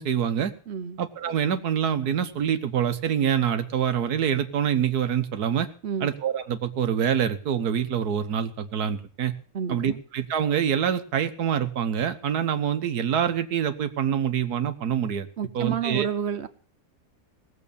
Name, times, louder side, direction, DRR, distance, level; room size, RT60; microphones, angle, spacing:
voice 1, 0.0-0.5 1.0-5.7 6.0-9.3 9.7-15.3 15.5-16.1, right 8 dB, 85° right, 10 dB, 1.6 m, -25 dB
voice 2, 0.7-1.0 5.8-6.1 9.5-10.0 15.4-16.5, right 7 dB, 50° right, 12 dB, 1.1 m, -30 dB
18.0 x 7.5 x 6.9 m, 0.43 s
omnidirectional pair, 1.6 m